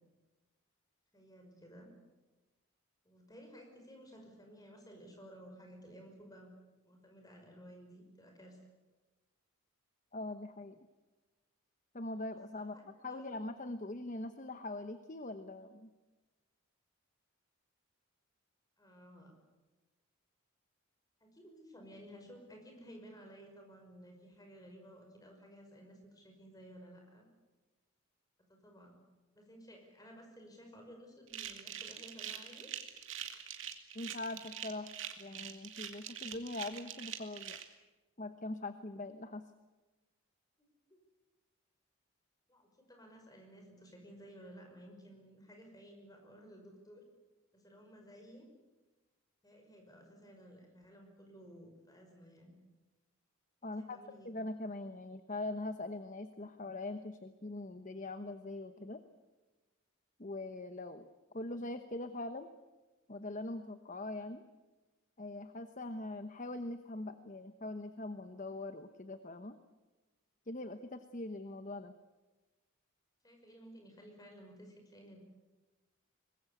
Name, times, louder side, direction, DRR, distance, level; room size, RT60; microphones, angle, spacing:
voice 1, 1.1-1.9 3.0-6.5 6.8-8.6 12.5-13.4 18.8-19.3 21.2-27.3 28.5-29.0 29.4-32.7 40.6-41.0 42.5-47.0 47.5-48.5 49.4-52.5 53.6-54.3 73.2-75.2, equal, 15° left, 3 dB, 5.7 m, -55 dB
voice 2, 10.1-10.8 11.9-12.7 13.0-15.9 33.9-34.9 35.2-37.6 38.2-39.4 53.6-54.0 54.2-59.0 60.2-61.1 61.3-62.5 63.1-64.4 65.2-69.6 70.5-71.9, left 2 dB, 35° left, 9 dB, 1.0 m, -42 dB
sound 1, 31.3-37.6, right 10 dB, 60° right, 2.4 m, -44 dB
24.0 x 21.0 x 8.3 m, 1.2 s
head